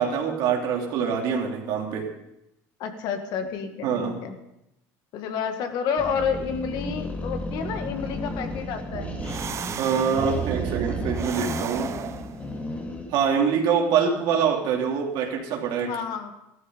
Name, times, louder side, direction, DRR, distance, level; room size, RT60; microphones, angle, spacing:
voice 1, 0.0-2.1 3.8-4.2 9.8-11.9 13.1-15.9, right 6 dB, 65° right, 1 dB, 3.2 m, -24 dB
voice 2, 2.8-4.4 5.1-9.1 15.9-16.3, left 6 dB, 60° left, 6 dB, 1.9 m, -30 dB
sound 1, 6.0-13.2, left 2 dB, 20° left, 2.2 m, -34 dB
sound 2, 8.9-12.4, right 9 dB, 35° right, 0.8 m, -32 dB
14.5 x 12.5 x 5.2 m, 0.85 s
supercardioid pair, 115°, 8 cm